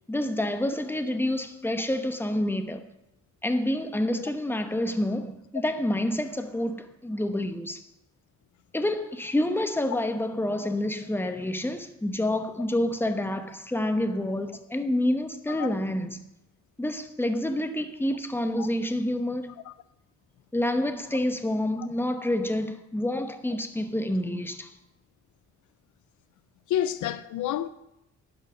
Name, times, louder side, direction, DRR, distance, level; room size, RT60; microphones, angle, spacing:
voice 1, 0.1-2.8 3.4-7.8 8.7-16.2 16.8-19.6 20.5-24.7, left 1 dB, 5° left, 1.0 m, -28 dB
voice 2, 26.7-27.7, left 11 dB, 75° left, 0.5 m, -29 dB
11.0 x 5.5 x 6.2 m
cardioid pair, 85°, 30 cm